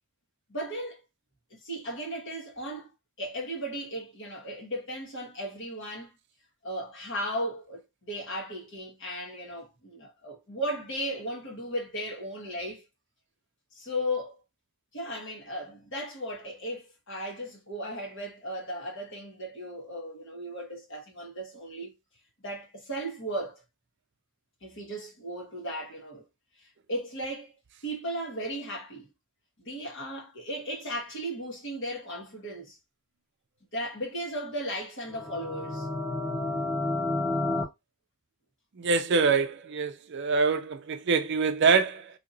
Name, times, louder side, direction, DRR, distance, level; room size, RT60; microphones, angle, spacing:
voice 1, 0.5-1.0 1.5-2.9 3.2-6.1 6.6-12.8 13.7-14.4 14.9-21.9 22.4-23.6 24.6-26.2 26.9-27.5 27.8-29.1 29.6-32.8 33.7-35.9, equal, 55° left, 1.4 m, -36 dB
sound 1, 35.1-37.6, left 2 dB, 30° left, 1.3 m, -30 dB
voice 2, 38.8-42.1, right 5 dB, 50° right, 0.5 m, -25 dB
4.1 x 2.8 x 2.6 m
head